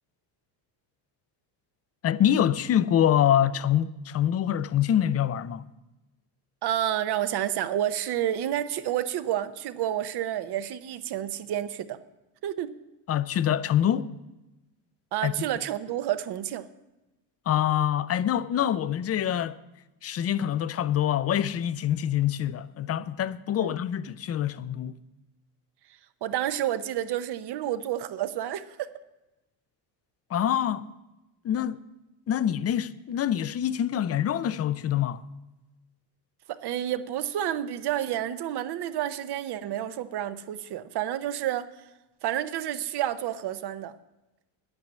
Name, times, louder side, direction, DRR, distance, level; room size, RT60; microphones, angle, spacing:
voice 1, 2.0-5.6 13.1-14.1 15.2-15.3 17.5-19.6 20.0-25.0 30.3-30.9 31.4-31.8 32.3-35.2, left 10 dB, 35° left, 0.4 m, -25 dB
voice 2, 6.6-12.0 12.4-12.8 15.1-16.7 23.6-23.7 26.2-28.9 36.5-41.7 42.2-43.9, right 11 dB, 55° right, 0.8 m, -30 dB
10.5 x 8.8 x 7.5 m
cardioid pair, 120°, 47 cm